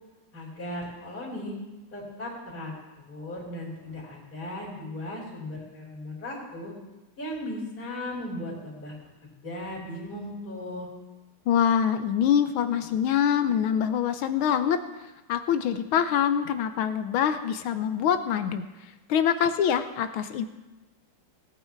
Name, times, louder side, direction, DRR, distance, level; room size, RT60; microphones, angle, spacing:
voice 1, 0.3-1.5 1.9-6.7 7.2-8.9 9.2-10.9, left 1 dB, 45° left, -9 dB, 4.0 m, -37 dB
voice 2, 11.5-14.8 15.3-18.6 19.1-20.5, left 8 dB, 80° left, 10 dB, 1.6 m, -24 dB
18.5 x 8.9 x 4.5 m, 1.1 s
omnidirectional pair, 2.3 m